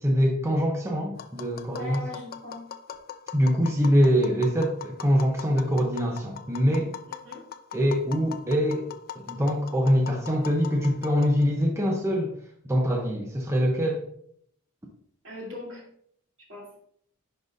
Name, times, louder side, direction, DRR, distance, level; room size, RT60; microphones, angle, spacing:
voice 1, 0.0-2.0 3.3-7.0 7.7-8.9 9.2-12.3 12.7-14.0, equal, 15° right, 0 dB, 0.7 m, -24 dB
Tap, 1.2-11.6, left 8 dB, 45° left, 0.4 m, -41 dB
voice 2, 1.7-2.6 7.1-7.4 15.2-15.9 16.5-16.7, left 2 dB, 60° right, -4 dB, 2.8 m, -39 dB
10.0 x 4.0 x 2.5 m, 0.66 s
head